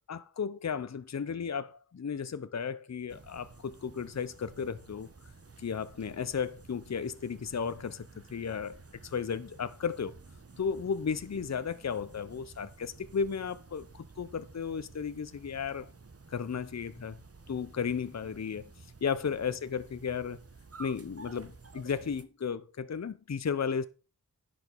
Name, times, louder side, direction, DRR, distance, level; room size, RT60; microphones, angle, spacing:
voice 1, 0.1-5.1 5.6-10.1 10.6-15.9 16.3-17.2 17.5-18.7 19.0-20.4 20.8-23.9, left 6 dB, 50° left, 0.7 m, -34 dB
sound 1, 3.1-22.2, right 3 dB, 40° right, 1.2 m, -53 dB
10.5 x 5.2 x 5.2 m
cardioid pair, 45°, 36 cm